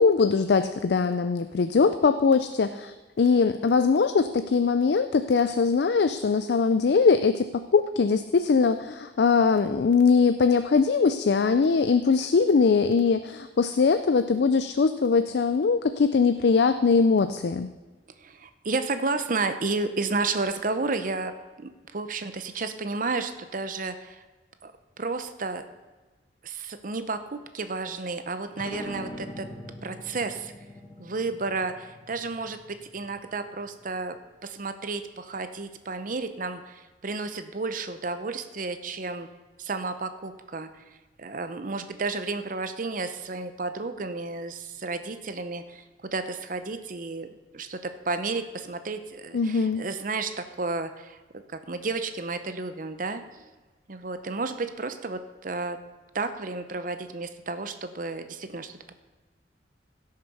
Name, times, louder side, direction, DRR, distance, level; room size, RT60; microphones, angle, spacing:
voice 1, 0.0-17.7 49.3-49.8, left 5 dB, 65° left, 10 dB, 0.4 m, -22 dB
voice 2, 18.2-21.3 21.6-24.2 24.6-24.7 25.0-25.7 26.4-29.5 29.8-30.5 31.0-34.2 34.4-39.3 39.6-40.8 41.2-45.8 46.1-47.3 47.5-51.2 51.5-53.2 53.9-55.8 56.1-59.0, right 3 dB, 50° right, 9 dB, 0.7 m, -32 dB
sound 1, 28.5-33.8, left 1 dB, 25° left, 1.1 m, -43 dB
16.0 x 6.6 x 5.4 m, 1.2 s
head